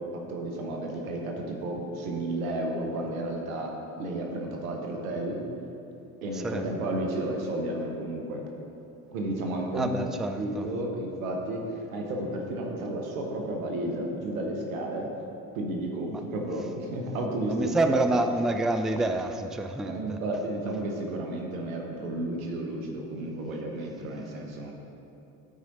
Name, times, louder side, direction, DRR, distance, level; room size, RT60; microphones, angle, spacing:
voice 1, 0.0-5.5 6.2-8.4 9.1-15.1 15.5-18.0 19.8-24.7, right 1 dB, 85° right, 1 dB, 1.2 m, -32 dB
voice 2, 6.3-6.6 9.7-10.7 16.1-16.2 17.4-20.2, right 2 dB, ahead, 7 dB, 0.4 m, -28 dB
12.5 x 4.8 x 4.0 m, 2.8 s
hypercardioid pair, 60°, 40 cm